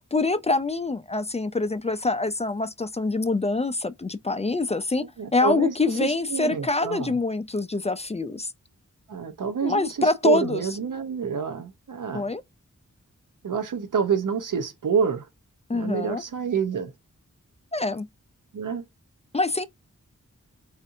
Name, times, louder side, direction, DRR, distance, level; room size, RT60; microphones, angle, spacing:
voice 1, 0.1-5.1 5.3-8.5 9.6-10.6 12.1-12.4 15.7-16.2 17.7-18.1 19.3-19.7, left 3 dB, 20° left, 0.4 m, -25 dB
voice 2, 5.2-7.1 9.1-12.3 13.4-15.3 15.7-16.9 18.5-18.8, right 6 dB, 90° right, 0.8 m, -28 dB
4.2 x 2.6 x 2.5 m
wide cardioid pair, 65°, 31 cm